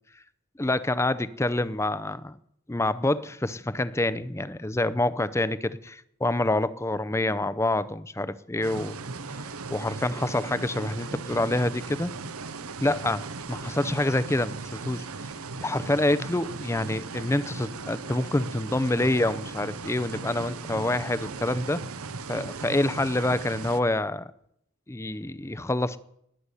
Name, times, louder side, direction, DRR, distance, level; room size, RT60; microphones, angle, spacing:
voice 1, 0.6-2.4 2.7-9.0 9.3-12.1 12.8-15.1 15.6-21.8 22.3-24.3 24.9-26.0, left 1 dB, 10° left, 16 dB, 0.5 m, -27 dB
sound 1, 8.6-23.8, right 4 dB, 80° right, 0.9 m, -37 dB
19.5 x 6.9 x 9.8 m, 0.74 s
head